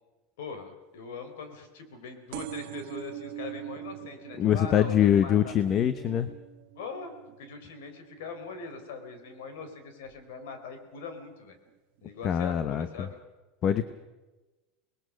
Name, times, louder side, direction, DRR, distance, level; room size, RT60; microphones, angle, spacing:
voice 1, 0.4-5.6 6.8-11.6 12.0-13.2, left 5 dB, 85° left, 8 dB, 4.2 m, -41 dB
sound 1, 2.3-9.6 10.0-10.5 11.4-11.5 11.7-11.8 12.0-12.1, right 16 dB, 60° right, 0.9 m, -44 dB
voice 2, 4.4-6.3 12.2-13.1 13.6-13.9, left 9 dB, 30° left, 12 dB, 0.8 m, -24 dB
26.5 x 20.5 x 6.3 m, 1.1 s
supercardioid pair, 165°, 0 cm